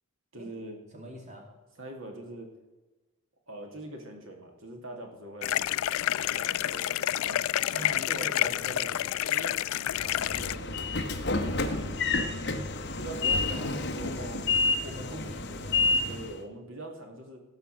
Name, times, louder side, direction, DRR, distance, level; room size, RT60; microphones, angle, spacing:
voice 1, 0.3-0.8 1.8-2.5 3.5-5.6 6.1-7.4 7.7-8.9 9.2-10.9 11.2-12.3 13.0-14.5 15.0-15.3 16.1-17.4, right 1 dB, 65° right, 3 dB, 2.4 m, -43 dB
voice 2, 0.9-1.5 7.7-9.1 13.6-13.7 14.0-14.4 14.8-15.9, equal, 30° right, 1 dB, 2.5 m, -43 dB
sound 1, 5.4-10.6, left 12 dB, 70° left, 0.3 m, -29 dB
Train / Sliding door, 9.9-16.4, left 3 dB, 50° left, 1.0 m, -29 dB
17.0 x 5.7 x 7.7 m, 1.2 s
head